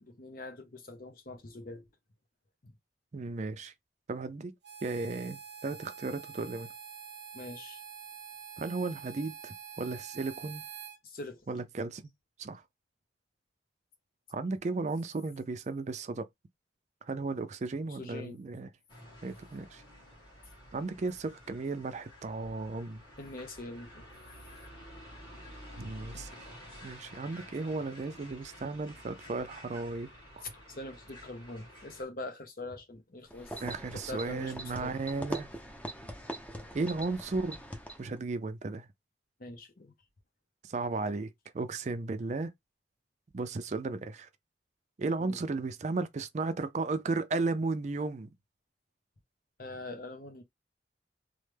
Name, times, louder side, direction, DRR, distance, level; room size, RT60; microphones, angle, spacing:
voice 1, 0.0-1.8 2.6-2.7 7.3-7.8 11.0-11.4 18.0-18.4 23.2-24.1 30.4-33.6 33.9-35.0 39.4-39.9 45.2-45.4 49.6-50.4, left 2 dB, 55° left, 0.8 m, -43 dB
voice 2, 3.1-3.7 4.1-4.5 4.8-6.7 8.6-10.6 11.5-12.0 12.4-12.6 14.3-16.3 17.0-18.7 19.2-19.8 20.7-23.0 25.8-26.4 26.8-30.1 30.4-30.5 33.6-35.5 36.7-37.6 38.0-38.9 40.6-42.5 43.3-44.3 45.0-48.3, right 3 dB, 40° right, 0.4 m, -35 dB
Harmonica, 4.6-11.0, right 7 dB, 75° right, 0.7 m, -46 dB
sound 1, 18.9-32.1, equal, 25° left, 1.7 m, -51 dB
sound 2, 33.3-38.2, right 1 dB, 10° left, 0.6 m, -42 dB
3.2 x 2.1 x 3.2 m
head